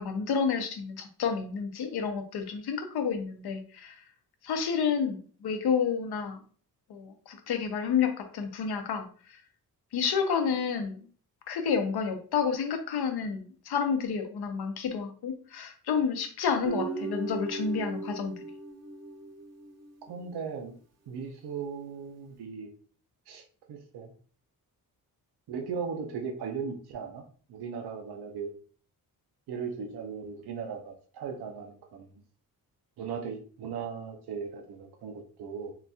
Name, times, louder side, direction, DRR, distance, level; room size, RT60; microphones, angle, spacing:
voice 1, 0.0-4.0 4.4-6.4 6.9-9.4 9.9-11.1 11.5-18.3, left 6 dB, 85° left, 6 dB, 0.7 m, -30 dB
Guitar, 16.6-19.9, right 4 dB, 45° right, 0.5 m, -37 dB
voice 2, 20.0-20.7 21.1-22.7 23.3-24.1 25.5-27.2 27.5-28.5 29.5-32.2 33.0-35.7, right 6 dB, 90° right, 4 dB, 0.6 m, -37 dB
3.9 x 2.3 x 2.6 m, 0.42 s
cardioid pair, 95°, 37 cm